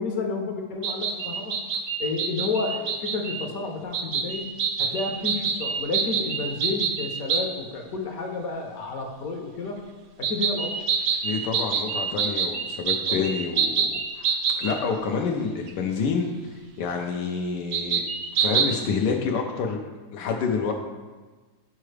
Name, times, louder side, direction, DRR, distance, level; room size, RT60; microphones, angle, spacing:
voice 1, 0.0-1.5 2.0-4.5 4.8-9.8 10.2-10.8 13.1-13.2, left 3 dB, 65° left, 3 dB, 1.2 m, -31 dB
sound 1, 0.8-3.5 3.9-7.5 10.2-14.8 15.7-15.8 17.7-18.7, right 6 dB, 65° right, 1.0 m, -26 dB
voice 2, 11.2-18.0 18.3-19.8 20.1-20.7, left 5 dB, 85° left, 2 dB, 1.3 m, -28 dB
8.9 x 4.7 x 3.2 m, 1.3 s
omnidirectional pair, 1.8 m